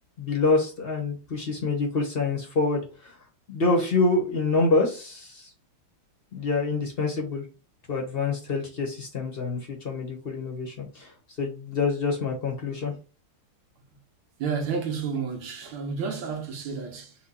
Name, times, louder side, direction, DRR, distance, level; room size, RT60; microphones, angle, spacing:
voice 1, 0.2-3.1 3.5-5.5 6.3-7.4 7.9-13.0, left 3 dB, 40° left, 0.8 m, -26 dB
voice 2, 14.4-17.2, right 5 dB, 75° right, 1.8 m, -31 dB
4.5 x 2.3 x 4.2 m
omnidirectional pair, 2.3 m